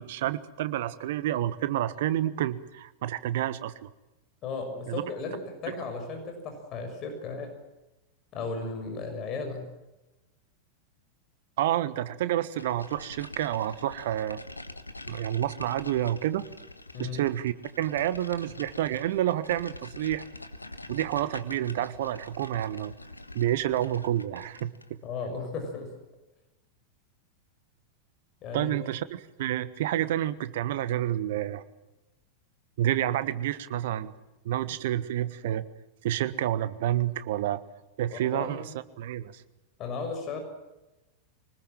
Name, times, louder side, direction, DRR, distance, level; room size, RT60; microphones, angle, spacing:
voice 1, 0.0-3.9 4.9-5.0 11.6-14.4 15.1-16.5 17.0-20.2 20.9-22.9 23.3-25.0 28.5-31.6 32.8-34.1 34.4-35.6 36.0-37.6 38.0-38.7 39.0-39.4, right 12 dB, 55° right, 14 dB, 1.3 m, -29 dB
voice 2, 4.4-7.5 8.3-9.7 16.9-17.2 25.0-25.9 28.4-28.7 38.1-38.7 39.8-40.4, left 4 dB, 35° left, 5 dB, 6.3 m, -35 dB
sound 1, 12.6-24.9, left 2 dB, 85° left, 1.5 m, -45 dB
24.5 x 20.0 x 7.6 m, 1.0 s
figure-of-eight pair, 90°, 0 cm